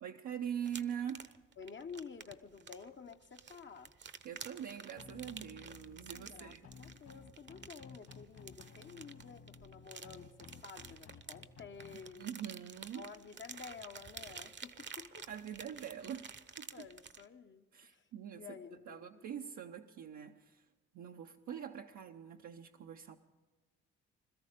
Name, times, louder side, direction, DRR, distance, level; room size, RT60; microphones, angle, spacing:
voice 1, 0.0-1.3 4.2-6.7 12.2-13.1 15.3-16.3 16.6-16.9 17.7-18.6 18.9-20.7 20.9-23.2, right 9 dB, 70° right, 2 dB, 0.8 m, -43 dB
sound 1, 0.6-17.3, right 6 dB, 35° right, 0.8 m, -51 dB
voice 2, 1.6-3.9 6.1-12.3 12.9-15.3 16.7-18.1 18.4-19.3, left 6 dB, 40° left, 6 dB, 0.9 m, -51 dB
sound 2, 5.0-12.0, left 6 dB, 60° left, 2.1 m, -55 dB
21.5 x 13.5 x 5.1 m, 1.3 s
supercardioid pair, 70°, 30 cm